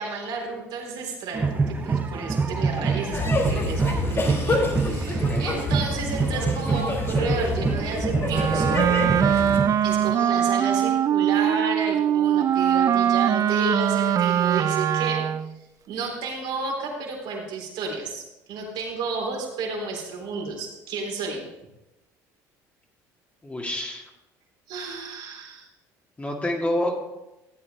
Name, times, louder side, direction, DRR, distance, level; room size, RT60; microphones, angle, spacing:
voice 1, 0.0-8.7 9.8-15.3 15.9-21.5 24.7-25.7, right 4 dB, 70° right, 0 dB, 3.6 m, -32 dB
sound 1, 1.3-10.1, right 4 dB, 25° right, 0.8 m, -27 dB
sound 2, 3.1-9.6, left 2 dB, 30° left, 3.3 m, -27 dB
voice 2, 5.1-5.4 10.2-10.3 23.4-24.0 26.2-26.9, left 1 dB, 15° left, 0 dB, 2.1 m, -28 dB
Wind instrument woodwind instrument, 8.3-15.5, right 10 dB, 45° right, 0.4 m, -22 dB
14.5 x 8.5 x 3.5 m, 0.98 s
supercardioid pair, 85°, 8 cm